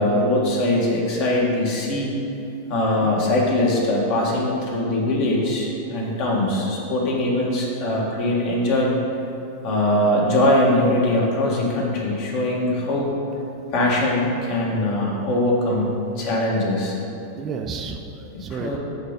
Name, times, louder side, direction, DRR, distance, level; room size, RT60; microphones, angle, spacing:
voice 1, 0.0-2.1 2.7-8.9 9.6-13.1 13.7-16.9 18.3-18.8, left 1 dB, 45° left, -2 dB, 1.5 m, -21 dB
voice 2, 2.7-3.1 5.9-6.2 17.4-18.8, right 5 dB, 25° right, 4 dB, 0.4 m, -32 dB
7.2 x 4.0 x 5.1 m, 2.9 s
figure-of-eight pair, 90°, 0 cm